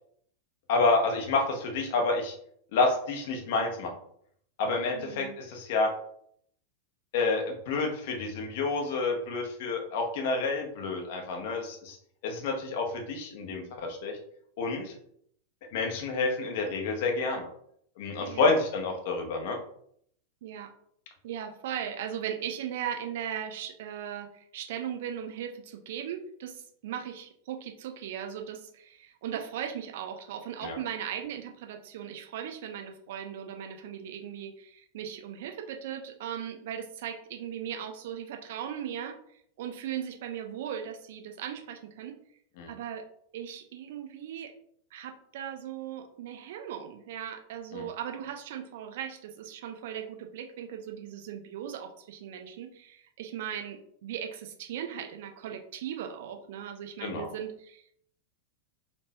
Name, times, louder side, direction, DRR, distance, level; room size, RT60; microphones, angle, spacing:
voice 1, 0.7-2.3 2.7-3.9 4.6-5.9 7.1-12.0 12.2-14.1 14.6-14.9 15.7-17.5 18.0-19.6 30.6-30.8 42.6-42.7 47.7-47.9 57.0-57.3, left 3 dB, 50° left, 3 dB, 0.8 m, -29 dB
voice 2, 4.9-5.4 18.2-18.5 20.4-20.7 21.2-39.2 39.6-42.2 42.7-43.0 43.3-44.5 44.9-57.9, right 9 dB, 55° right, 5 dB, 0.5 m, -38 dB
4.3 x 3.0 x 2.8 m, 0.67 s
figure-of-eight pair, 90°, 0 cm